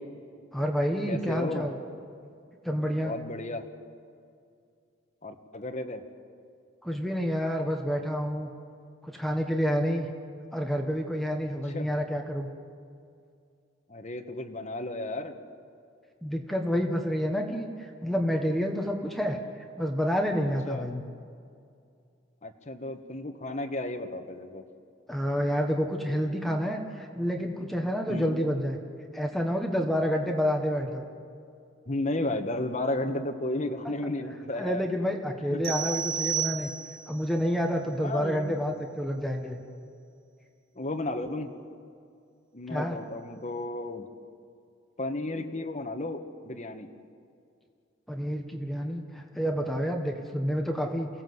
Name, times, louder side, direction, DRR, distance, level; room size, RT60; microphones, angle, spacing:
voice 1, 0.5-1.8 2.6-3.1 6.8-8.5 9.0-10.1 10.5-12.5 16.2-19.4 19.8-21.0 25.1-28.8 29.1-31.1 34.6-36.7 37.1-39.6 42.7-43.0 48.1-51.1, equal, ahead, 2 dB, 1.4 m, -29 dB
voice 2, 1.1-1.6 3.0-3.6 5.2-6.0 11.7-11.9 13.9-15.3 20.7-20.9 22.4-24.6 28.1-28.3 31.9-34.8 35.5-35.8 38.0-38.6 40.7-41.5 42.5-44.1 45.0-46.9, left 2 dB, 35° left, 4 dB, 1.5 m, -33 dB
sound 1, 35.6-37.2, right 8 dB, 80° right, 2.8 m, -31 dB
28.5 x 17.0 x 8.0 m, 2.4 s
head